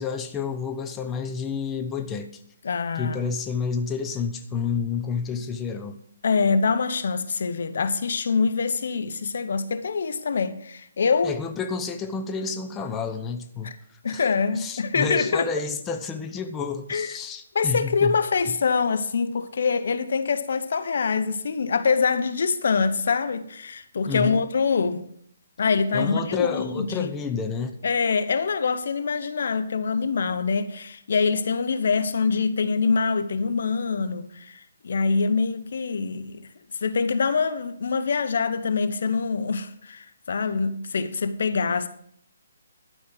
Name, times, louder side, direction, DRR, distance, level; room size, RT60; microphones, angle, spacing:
voice 1, 0.0-2.4 2.9-6.0 11.2-14.3 14.5-18.1 24.1-24.4 25.9-27.7, left 5 dB, 15° left, 0.9 m, -30 dB
voice 2, 2.6-3.2 6.2-11.4 13.6-13.8 14.0-15.5 16.9-17.2 17.5-25.1 25.6-27.1 27.8-36.4 36.8-41.9, left 5 dB, 60° left, 0.9 m, -24 dB
12.0 x 5.6 x 7.8 m
figure-of-eight pair, 140°, 0 cm